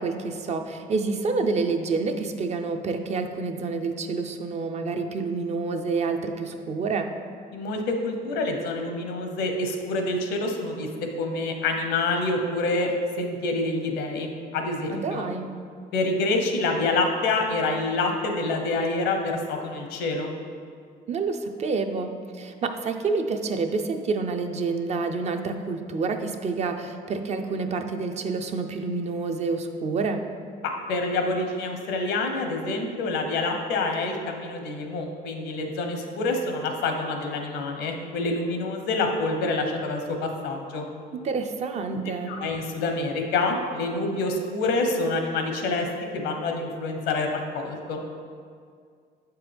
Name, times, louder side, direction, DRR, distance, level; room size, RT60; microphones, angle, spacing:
voice 1, 0.0-7.1 14.9-15.5 21.1-30.2 41.2-42.4, right 4 dB, 40° right, 6 dB, 0.5 m, -28 dB
voice 2, 7.5-10.9 11.2-15.2 15.9-20.3 30.9-40.9 42.3-45.9 46.1-48.0, left 2 dB, 90° left, 4 dB, 0.8 m, -27 dB
7.0 x 4.6 x 3.4 m, 2.2 s
cardioid pair, 110°, 17 cm